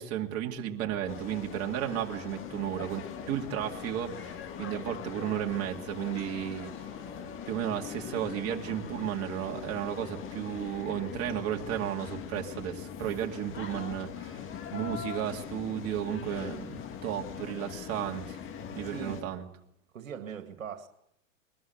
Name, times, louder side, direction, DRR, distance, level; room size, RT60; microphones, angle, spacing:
voice 1, 0.0-6.9 7.5-14.4 14.7-18.4 18.7-19.5, right 10 dB, 35° right, 2.5 m, -34 dB
sound 1, 0.8-11.1, left 6 dB, 50° left, 3.6 m, -50 dB
sound 2, 1.1-19.2, left 8 dB, 30° left, 1.8 m, -42 dB
voice 2, 18.8-19.4 19.9-20.9, right 8 dB, 75° right, 2.1 m, -41 dB
22.0 x 13.0 x 9.4 m
hypercardioid pair, 105°, 40 cm